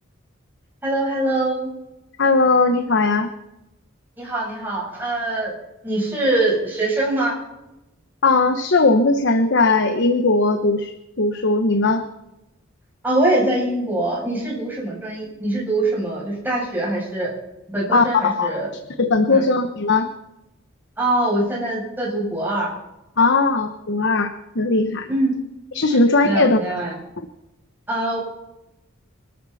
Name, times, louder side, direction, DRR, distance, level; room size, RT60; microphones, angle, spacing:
voice 1, 0.8-1.7 4.2-5.5 5.8-7.4 13.0-17.3 17.7-18.7 19.3-19.4 21.0-22.7 25.1-25.3 25.9-26.9 27.9-28.2, right 1 dB, 10° right, -5 dB, 7.8 m, -23 dB
voice 2, 2.2-3.3 8.2-12.0 17.9-18.5 19.0-20.1 23.2-25.1 25.7-26.6, left 3 dB, 60° left, 7 dB, 1.1 m, -18 dB
25.5 x 13.0 x 4.2 m, 0.92 s
head